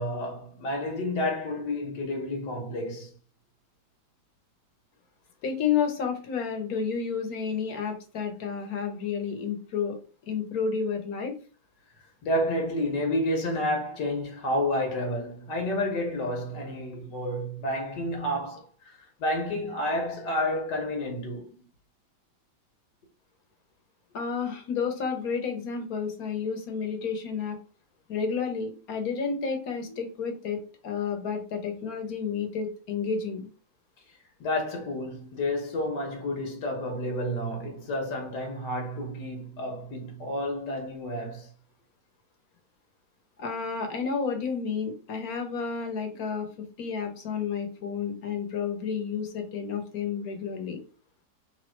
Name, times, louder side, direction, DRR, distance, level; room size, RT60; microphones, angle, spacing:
voice 1, 0.0-3.1 12.2-21.5 34.4-41.5, left 1 dB, 80° left, 1.8 m, -30 dB
voice 2, 5.4-10.0 10.3-11.4 24.1-27.6 28.1-33.5 43.4-46.5 46.8-50.8, left 6 dB, 60° left, 1.4 m, -31 dB
3.4 x 3.2 x 4.4 m
omnidirectional pair, 1.8 m